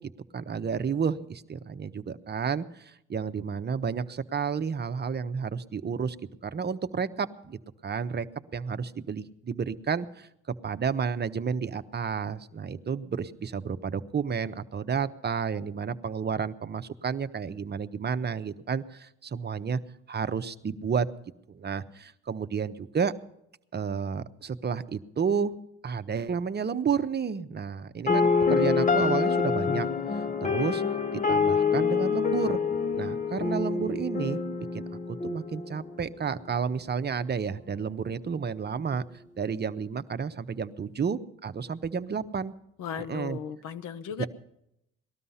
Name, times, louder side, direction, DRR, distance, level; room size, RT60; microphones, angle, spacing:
voice 1, 0.3-6.2 6.4-8.3 8.5-10.3 10.6-19.8 20.1-21.1 21.5-23.1 23.7-25.6 25.8-29.9 30.4-30.8 31.1-32.6 32.9-34.4 34.7-34.8 35.1-39.0 39.4-42.5 43.1-43.4 44.2-44.3, right 6 dB, 35° right, 11 dB, 0.8 m, -31 dB
sound 1, 28.1-36.1, left 5 dB, 25° left, 0.7 m, -26 dB
voice 2, 42.8-44.3, left 8 dB, 85° left, 12 dB, 0.9 m, -36 dB
19.0 x 12.5 x 5.6 m, 0.79 s
cardioid pair, 90°, 30 cm